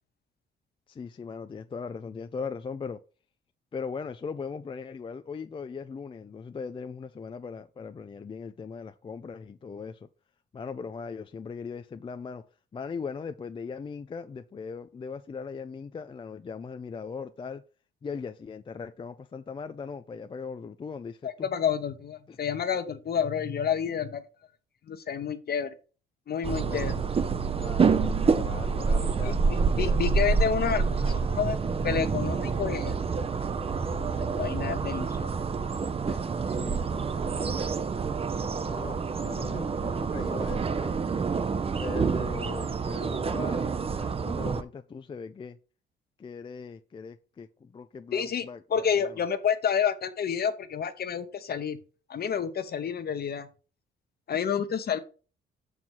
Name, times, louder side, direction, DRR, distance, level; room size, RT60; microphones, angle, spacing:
voice 1, 0.9-3.0 3.7-10.1 10.5-12.4 12.7-17.6 18.0-21.5 22.3-22.4 26.6-27.1 27.6-29.4 29.7-30.0 36.5-36.9 38.6-41.0 41.8-45.6 46.2-49.2, left 5 dB, 25° left, 0.4 m, -39 dB
voice 2, 21.2-24.2 24.9-25.7 26.3-26.9 29.2-31.6 31.8-33.0 33.7-33.8 34.1-35.3 36.1-36.2 48.1-51.8 52.1-53.5 54.3-55.0, left 7 dB, 50° left, 1.0 m, -29 dB
sound 1, 26.4-44.6, right 5 dB, 30° right, 0.6 m, -28 dB
5.9 x 4.8 x 5.5 m
cardioid pair, 90°, 20 cm